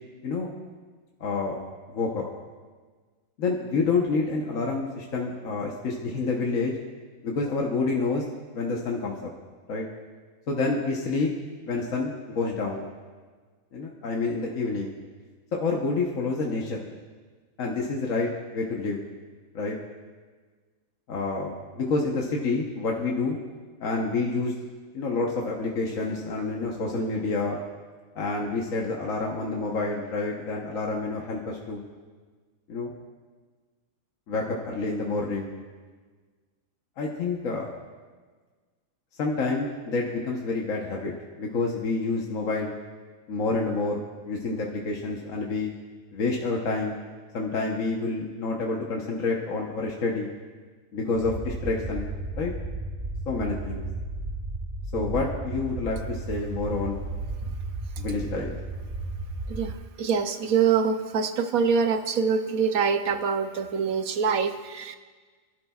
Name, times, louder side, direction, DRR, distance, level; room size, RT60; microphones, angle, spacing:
voice 1, 1.2-1.6 1.9-2.2 3.4-6.8 7.2-8.2 8.5-9.3 9.7-9.8 10.5-11.3 11.7-12.8 13.7-14.9 15.5-16.8 17.6-19.0 19.5-19.8 21.1-23.4 23.8-24.6 24.9-27.6 28.1-31.8 32.7-32.9 34.3-35.5 37.0-37.7 39.2-41.1 41.4-42.8 43.3-45.7 46.1-47.0 47.3-50.3 50.9-52.1 52.4-52.5 53.3-53.8 54.9-57.0 58.0-58.5, left 3 dB, 70° left, -1 dB, 1.5 m, -28 dB
sound 1, 51.1-59.7, right 2 dB, 35° right, 1.4 m, -34 dB
voice 2, 59.5-65.0, right 6 dB, 85° right, 8 dB, 1.2 m, -25 dB
27.0 x 12.0 x 2.4 m, 1.4 s
omnidirectional pair, 1.4 m